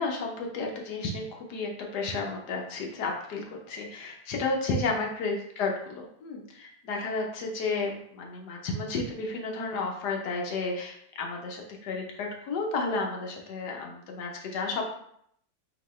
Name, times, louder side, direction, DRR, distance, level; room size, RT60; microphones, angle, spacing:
voice 1, 0.0-14.8, left 3 dB, 75° left, 1 dB, 1.3 m, -32 dB
4.8 x 3.0 x 3.1 m, 0.69 s
omnidirectional pair, 1.8 m